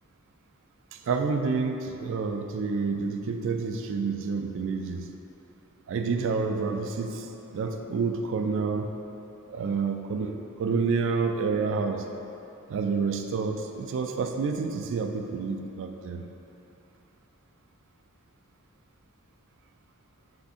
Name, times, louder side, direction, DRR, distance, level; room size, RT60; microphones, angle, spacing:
voice 1, 0.9-5.1 5.9-8.9 9.5-12.1 12.7-16.2, right 4 dB, 60° right, 5 dB, 0.3 m, -29 dB
3.5 x 3.5 x 4.1 m, 2.9 s
head